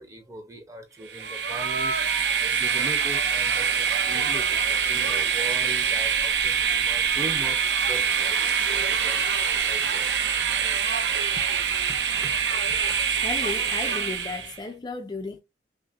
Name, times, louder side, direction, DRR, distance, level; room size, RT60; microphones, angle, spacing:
voice 1, 0.0-9.2 9.6-10.1 10.8-12.3 12.7-12.8, right 1 dB, 15° right, 0.7 m, -40 dB
Train, 1.1-14.6, right 6 dB, 65° right, 0.6 m, -25 dB
voice 2, 13.2-15.4, left 3 dB, 25° left, 0.4 m, -34 dB
5.5 x 2.1 x 2.5 m
head